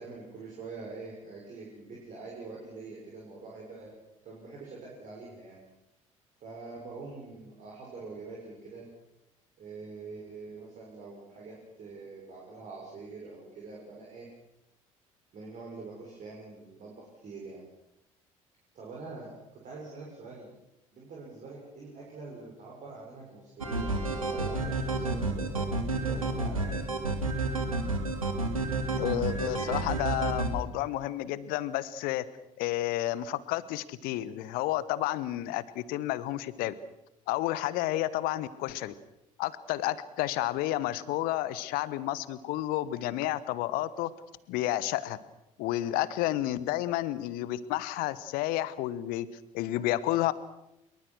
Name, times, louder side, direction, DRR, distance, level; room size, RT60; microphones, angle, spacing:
voice 1, 0.0-3.9 4.2-5.6 6.4-8.8 9.6-14.3 15.3-17.6 18.7-19.3 19.6-20.5 20.9-25.6 26.0-27.0, right 3 dB, 45° right, -3 dB, 6.5 m, -44 dB
sound 1, 23.6-30.5, right 2 dB, 80° right, 2.3 m, -30 dB
voice 2, 29.0-32.2 32.6-36.7 37.3-38.9 39.4-44.1 44.5-45.2 45.6-49.3 49.5-50.3, left 15 dB, 60° left, 17 dB, 1.2 m, -31 dB
24.5 x 23.0 x 6.4 m, 0.87 s
figure-of-eight pair, 55°, 17 cm